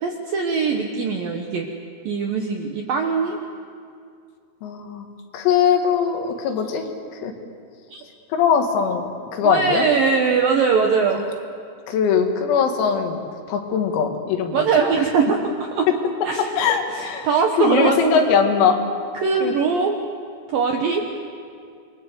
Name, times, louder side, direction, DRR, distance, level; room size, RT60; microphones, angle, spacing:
voice 1, 0.0-1.7 2.1-3.4 7.9-8.0 9.4-11.2 14.5-15.9 16.2-16.5 16.9-18.0 19.1-20.0 20.5-21.0, right 5 dB, 75° right, 2 dB, 2.1 m, -21 dB
voice 2, 4.6-5.1 5.3-6.9 7.1-7.3 8.3-9.9 11.9-13.2 13.5-14.6 16.4-17.3 17.6-18.8 19.4-19.6, left 6 dB, 90° left, 4 dB, 4.8 m, -21 dB
28.0 x 23.0 x 8.0 m, 2.3 s
omnidirectional pair, 6.0 m